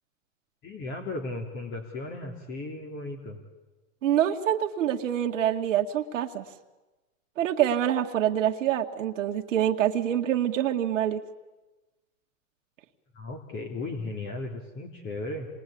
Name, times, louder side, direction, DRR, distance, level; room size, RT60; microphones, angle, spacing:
voice 1, 0.6-3.4 13.1-15.5, left 2 dB, 30° left, 3 dB, 3.0 m, -36 dB
voice 2, 4.0-6.4 7.4-11.2, right 10 dB, 75° right, 3 dB, 1.9 m, -26 dB
27.5 x 21.0 x 8.6 m, 1.1 s
hypercardioid pair, 130°, 39 cm